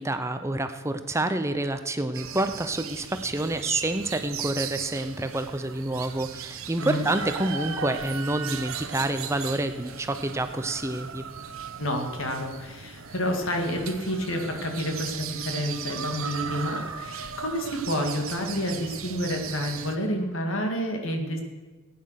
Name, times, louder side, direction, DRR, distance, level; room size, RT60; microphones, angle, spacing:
voice 1, 0.0-11.2, right 2 dB, 15° right, 9 dB, 0.6 m, -28 dB
sound 1, 2.1-20.0, right 7 dB, 70° right, 0.9 m, -37 dB
voice 2, 11.8-21.4, equal, 60° left, 3 dB, 2.2 m, -29 dB
16.5 x 9.5 x 6.5 m, 1.3 s
head